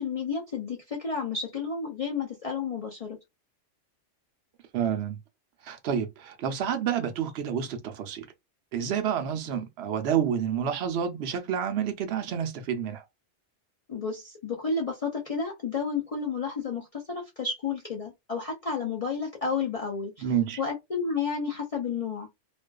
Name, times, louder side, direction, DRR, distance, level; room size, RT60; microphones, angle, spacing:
voice 1, 0.0-3.2 13.9-20.3 20.6-22.3, left 5 dB, 65° left, 0.3 m, -31 dB
voice 2, 4.7-5.2 5.6-8.3 8.7-13.0 20.2-20.6, right 8 dB, 65° right, 0.8 m, -29 dB
2.4 x 2.3 x 2.2 m
omnidirectional pair, 1.3 m